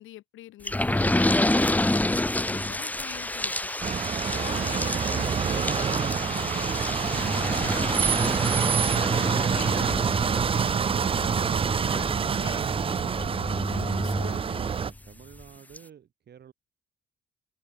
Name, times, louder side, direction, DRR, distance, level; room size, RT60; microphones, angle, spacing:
voice 1, 0.0-3.7 4.3-6.7 7.0-8.3 8.9-14.7, left 14 dB, 85° left, 3.1 m, -45 dB
sound 1, 0.7-15.0 15.4-15.5 15.8-15.9, left 1 dB, 10° left, 0.8 m, -29 dB
sound 2, 3.8-14.9, right 6 dB, 30° right, 0.4 m, -26 dB
voice 2, 14.2-16.5, right 9 dB, 55° right, 2.8 m, -51 dB
cardioid pair, 90°, 20 cm